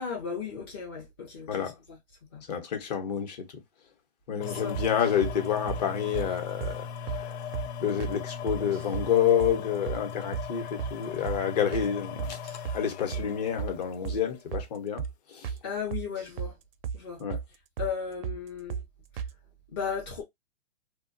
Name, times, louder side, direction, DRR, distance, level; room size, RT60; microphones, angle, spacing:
voice 1, 0.0-2.0 2.3-2.4 4.5-5.0 15.6-16.5 16.9-17.2 17.8-18.8 19.1-19.2 19.7-20.2, left 6 dB, 20° left, 0.4 m, -36 dB
voice 2, 2.5-3.4 4.3-7.4 7.8-12.4 12.7-15.0 15.3-15.5 17.2-17.4, left 8 dB, 40° left, 0.9 m, -29 dB
sound 1, 4.4-14.4 15.0-15.1, left 7 dB, 75° left, 0.5 m, -39 dB
sound 2, 4.7-5.4 5.7-5.8 6.1-6.3 6.6-6.8 7.1-7.2 7.5-7.7 8.0-8.2 8.5-9.1 9.4-9.6 9.9-10.0 10.3-10.5 10.8-11.0 11.3-11.4 11.7-11.9 12.2-12.8 13.1-13.3 13.6-13.7 14.0-14.2 14.5-14.7 15.0-15.1 15.4-15.6 15.9-16.5 16.8-17.0 17.3-17.5 17.8-17.9 18.2-18.4 18.7-18.9 19.2-19.3, right 7 dB, 60° right, 0.4 m, -34 dB
2.8 x 2.2 x 2.5 m
hypercardioid pair, 165°, 33 cm